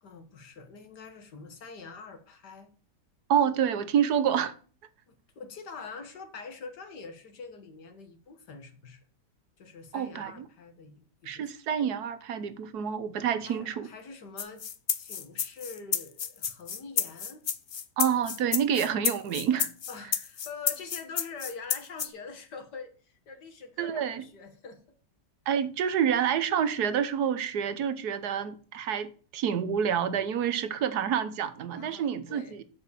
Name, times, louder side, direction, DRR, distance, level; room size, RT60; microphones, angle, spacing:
voice 1, 0.0-2.7 5.1-9.1 9.6-11.5 13.4-14.7 15.0-17.5 19.9-24.8 31.7-32.6, left 4 dB, 75° left, 2.0 m, -45 dB
voice 2, 3.3-4.5 9.9-10.4 11.2-13.9 18.0-19.7 23.8-24.2 25.5-32.6, right 8 dB, 70° right, 1.5 m, -28 dB
sound 1, 14.4-22.1, left 7 dB, 50° left, 0.6 m, -30 dB
8.0 x 7.1 x 6.7 m
omnidirectional pair, 1.8 m